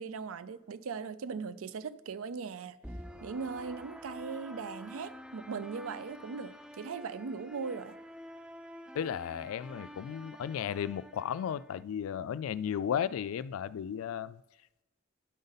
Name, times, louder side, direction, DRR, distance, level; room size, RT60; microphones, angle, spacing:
voice 1, 0.0-2.8 3.2-8.0, right 5 dB, 85° right, 0.5 m, -39 dB
sound 1, 2.8-11.8, equal, 5° right, 0.3 m, -48 dB
voice 2, 8.9-14.4, left 8 dB, 85° left, 0.3 m, -34 dB
10.5 x 5.2 x 4.0 m
head